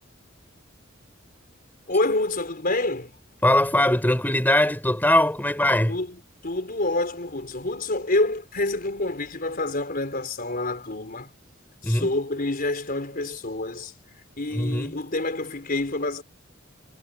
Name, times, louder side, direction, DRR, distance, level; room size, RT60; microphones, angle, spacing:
voice 1, 1.9-3.1 5.9-11.3 11.8-13.9 14.4-16.2, left 2 dB, 50° left, 4.4 m, -27 dB
voice 2, 3.4-6.0 11.8-12.1 14.5-14.9, left 1 dB, 10° left, 3.6 m, -21 dB
head